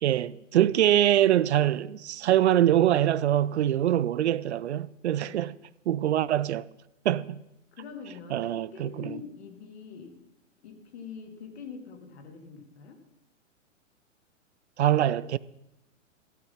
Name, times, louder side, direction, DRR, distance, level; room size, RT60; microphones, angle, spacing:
voice 1, 0.0-5.5 5.9-6.7 7.0-7.4 8.3-9.2 14.8-15.4, right 12 dB, 60° right, 0.5 m, -24 dB
voice 2, 7.7-10.2 10.6-13.0, left 6 dB, 55° left, 2.8 m, -44 dB
15.0 x 8.4 x 5.7 m
figure-of-eight pair, 110°, 38 cm